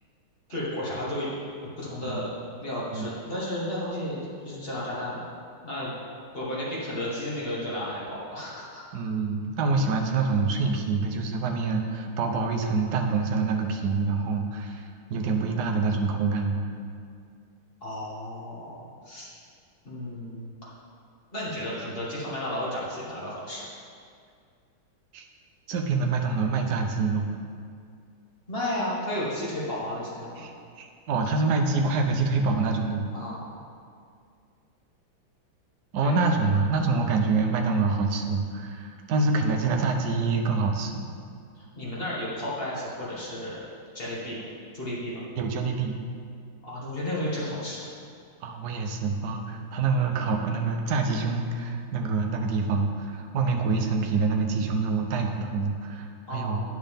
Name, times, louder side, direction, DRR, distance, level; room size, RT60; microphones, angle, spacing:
voice 1, 0.5-1.3 1.8-2.3 2.6-5.3 5.6-5.9 6.3-8.8 17.8-19.3 19.8-20.5 21.3-23.6 28.5-30.5 33.1-33.4 36.0-36.2 41.6-43.6 43.9-44.4 44.7-45.2 46.6-47.9 56.3-56.6, left 1 dB, 30° left, -7 dB, 1.8 m, -33 dB
voice 2, 8.9-16.7 25.1-25.2 25.7-27.3 30.4-33.1 35.9-41.0 45.4-46.0 48.4-56.6, right 4 dB, 65° right, 3 dB, 1.1 m, -26 dB
9.4 x 6.6 x 3.5 m, 2.2 s
omnidirectional pair, 2.2 m